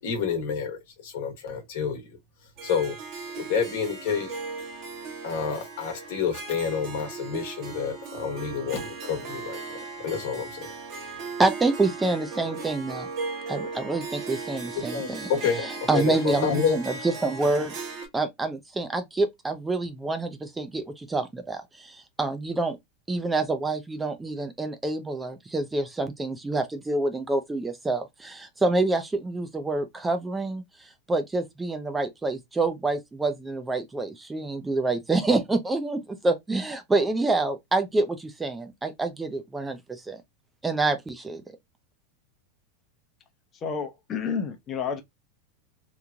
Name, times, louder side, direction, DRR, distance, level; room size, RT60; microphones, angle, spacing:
voice 1, 0.0-2.2 2.6-3.0 3.3-4.4 5.2-10.7 14.7-16.8, left 6 dB, 70° left, 1.1 m, -29 dB
Harp, 2.6-18.1, right 4 dB, 50° right, 1.0 m, -37 dB
voice 2, 11.4-13.1 13.5-15.3 15.6-17.8 18.1-22.8 23.1-40.2 40.6-41.4, right 3 dB, 10° right, 0.5 m, -27 dB
voice 3, 43.5-45.0, left 6 dB, 35° left, 0.7 m, -30 dB
3.0 x 2.1 x 2.5 m
hypercardioid pair, 110°, 0 cm